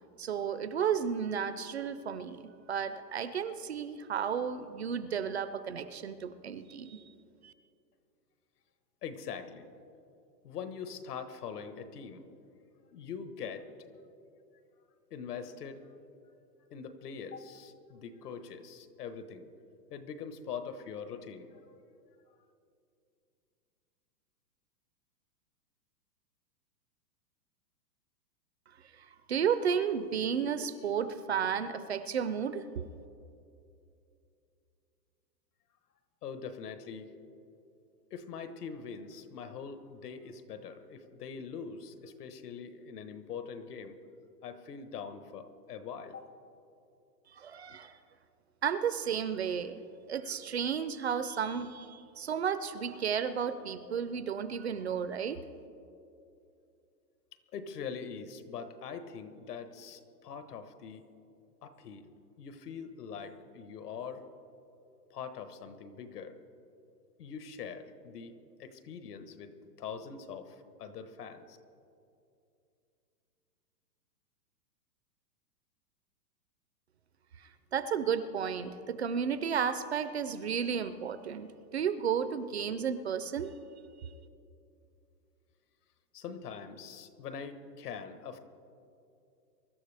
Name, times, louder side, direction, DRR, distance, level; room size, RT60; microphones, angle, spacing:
voice 1, 0.2-2.4 2.7-7.0 7.4-7.5 29.0-32.9 47.3-47.9 48.6-49.8 50.1-55.4 77.7-83.5, right 7 dB, 45° right, 12 dB, 0.5 m, -33 dB
voice 2, 9.0-9.7 10.4-12.3 12.9-13.7 15.1-15.8 16.7-19.5 19.9-21.6 36.2-37.1 38.1-44.0 44.4-46.3 57.5-61.0 61.6-62.1 62.4-64.2 65.1-66.3 67.2-68.3 68.6-71.6 86.1-88.4, left 6 dB, 65° left, 10 dB, 1.3 m, -43 dB
23.5 x 12.5 x 3.4 m, 2.6 s
hypercardioid pair, 175°, 49 cm